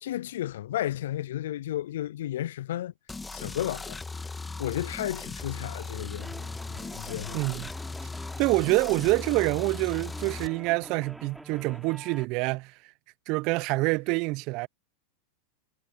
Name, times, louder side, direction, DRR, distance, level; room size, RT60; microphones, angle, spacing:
voice 1, 0.0-2.9 3.3-4.0 4.6-7.4, left 13 dB, 70° left, 0.5 m, -33 dB
sound 1, 3.1-10.5, left 3 dB, 10° left, 2.5 m, -38 dB
sound 2, 6.2-12.3, right 1 dB, 5° right, 3.7 m, -46 dB
voice 2, 7.3-7.7 8.4-12.7 13.3-14.7, right 24 dB, 50° right, 0.9 m, -26 dB
hypercardioid pair, 100°, 0 cm